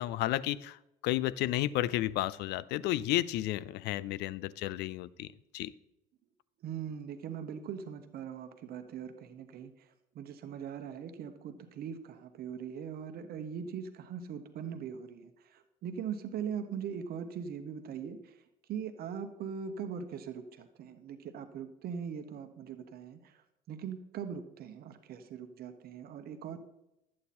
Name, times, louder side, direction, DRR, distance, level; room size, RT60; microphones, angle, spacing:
voice 1, 0.0-5.3 5.5-5.7, left 15 dB, 85° left, 19 dB, 0.5 m, -32 dB
voice 2, 6.6-9.9 10.1-18.4 18.7-26.6, right 7 dB, 65° right, 8 dB, 1.1 m, -41 dB
13.0 x 8.7 x 4.3 m, 0.87 s
cardioid pair, 110°, 17 cm